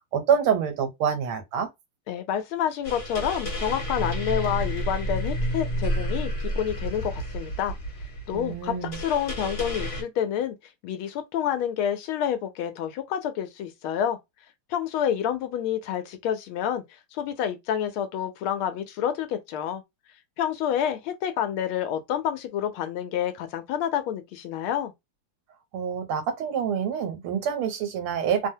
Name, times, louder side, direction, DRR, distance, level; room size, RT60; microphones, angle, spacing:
voice 1, 0.1-1.7 8.3-9.0 25.7-28.5, right 7 dB, 75° right, 1.5 m, -26 dB
voice 2, 2.1-7.7 8.3-10.6 10.8-14.2 14.7-16.8 17.1-19.8 20.4-24.9, left 9 dB, 80° left, 1.4 m, -28 dB
sound 1, 2.8-10.0, equal, 45° left, 1.5 m, -30 dB
3.5 x 2.0 x 2.7 m
omnidirectional pair, 2.4 m